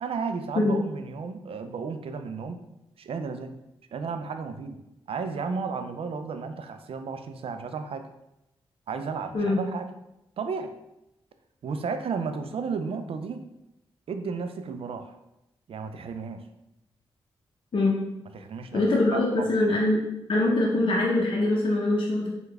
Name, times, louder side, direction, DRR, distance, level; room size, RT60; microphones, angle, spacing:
voice 1, 0.0-2.6 3.0-3.5 3.9-4.8 5.1-8.1 8.9-9.9 10.4-10.7 11.6-13.4 14.1-15.1 15.7-16.4 18.3-18.8 19.1-19.5, right 5 dB, 65° right, 8 dB, 0.4 m, -33 dB
voice 2, 18.7-20.0 20.3-22.3, left 2 dB, 55° left, -3 dB, 0.6 m, -23 dB
3.2 x 2.3 x 3.3 m, 0.89 s
supercardioid pair, 45°, 10 cm